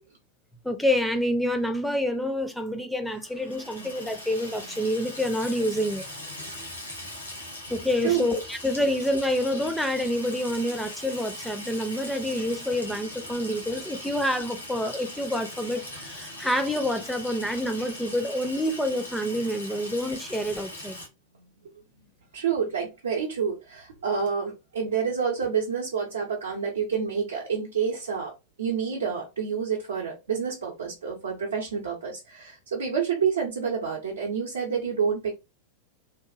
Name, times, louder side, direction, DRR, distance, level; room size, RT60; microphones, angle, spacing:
voice 1, 0.6-6.0 7.7-21.0, left 1 dB, ahead, 0.4 m, -27 dB
Water tap faucet / Sink (filling or washing), 3.2-21.1, left 1 dB, 85° left, 1.1 m, -40 dB
voice 2, 22.3-28.3 28.6-35.3, right 6 dB, 70° right, 0.6 m, -28 dB
2.9 x 2.3 x 2.4 m
figure-of-eight pair, 90°, 0 cm